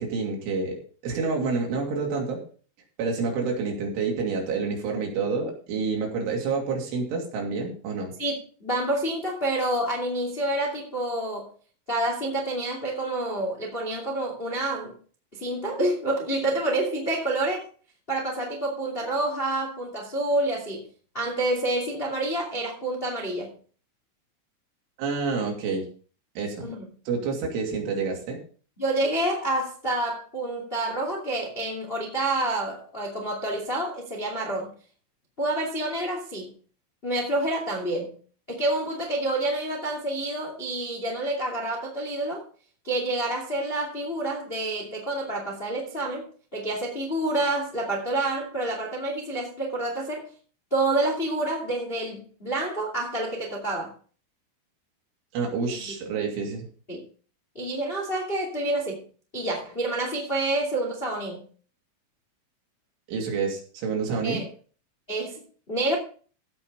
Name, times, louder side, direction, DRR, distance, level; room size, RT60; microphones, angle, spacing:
voice 1, 0.0-2.4 3.0-8.1 25.0-25.9 26.4-26.7 27.1-28.4 55.3-56.7 63.1-64.4, right 4 dB, 70° right, 5.1 m, -28 dB
voice 2, 8.2-11.5 11.9-14.9 15.3-17.6 18.1-20.9 21.1-23.5 26.6-26.8 28.8-34.7 35.4-36.5 37.0-38.1 38.5-42.4 42.8-46.3 46.5-50.3 50.7-53.9 55.8-55.9 56.9-57.0 57.5-59.0 59.3-61.4 64.2-64.4 65.1-66.0, right 2 dB, 40° left, 0.8 m, -28 dB
16.0 x 5.6 x 5.3 m
omnidirectional pair, 5.8 m